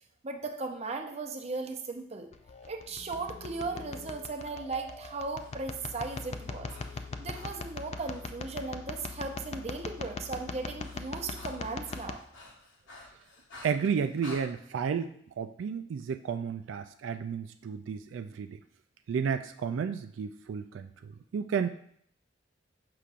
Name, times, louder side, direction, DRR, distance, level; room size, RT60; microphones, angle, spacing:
voice 1, 0.2-2.3 2.7-6.7 7.2-12.2, right 3 dB, 35° right, 4 dB, 0.6 m, -37 dB
sound 1, 2.3-12.1, left 3 dB, 35° left, 0.4 m, -41 dB
Breathing, 5.1-8.3 9.0-9.2 9.5-14.5, left 2 dB, 90° left, 1.5 m, -52 dB
voice 2, 13.6-18.6 19.1-21.7, right 6 dB, 85° right, 9 dB, 0.3 m, -32 dB
6.7 x 5.7 x 2.5 m, 0.66 s
head